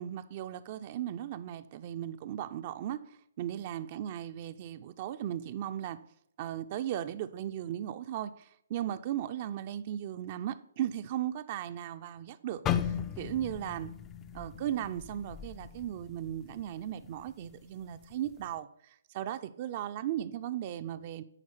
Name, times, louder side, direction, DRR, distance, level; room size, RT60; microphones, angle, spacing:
voice 1, 0.0-3.0 3.4-6.0 6.4-8.3 8.7-13.9 14.3-18.7 19.1-21.2, right 11 dB, 40° right, 10 dB, 0.4 m, -36 dB
sound 1, 12.7-16.7 17.0-17.3 18.0-18.3, left 9 dB, 20° left, 0.4 m, -36 dB
9.9 x 4.3 x 5.9 m, 0.74 s
figure-of-eight pair, 135°, 0 cm